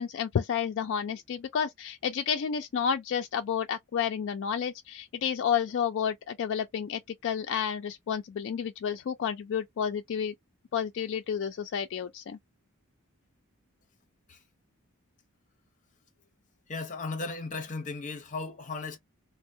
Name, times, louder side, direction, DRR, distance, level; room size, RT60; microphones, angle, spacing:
voice 1, 0.0-10.3 10.7-12.4, left 7 dB, 55° left, 0.3 m, -31 dB
voice 2, 16.7-19.0, left 3 dB, 35° left, 0.7 m, -36 dB
3.4 x 2.0 x 2.6 m
head